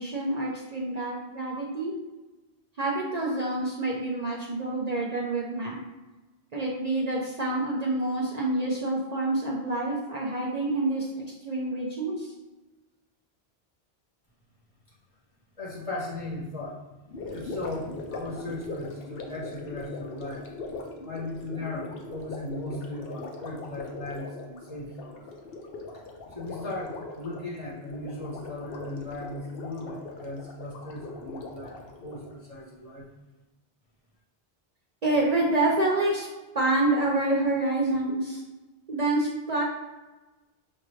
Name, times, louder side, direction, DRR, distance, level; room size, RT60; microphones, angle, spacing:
voice 1, 0.0-1.9 2.8-5.8 6.5-12.3 35.0-36.3 36.5-38.4 38.9-39.6, right 2 dB, 45° right, -3 dB, 0.7 m, -27 dB
voice 2, 15.6-16.8 17.3-20.5 21.0-25.1 26.3-31.8 32.0-33.1, left 2 dB, 35° left, -6 dB, 1.0 m, -37 dB
Gurgling, 17.1-32.4, left 3 dB, 65° left, 0.9 m, -40 dB
5.9 x 2.5 x 3.1 m, 1.1 s
omnidirectional pair, 1.1 m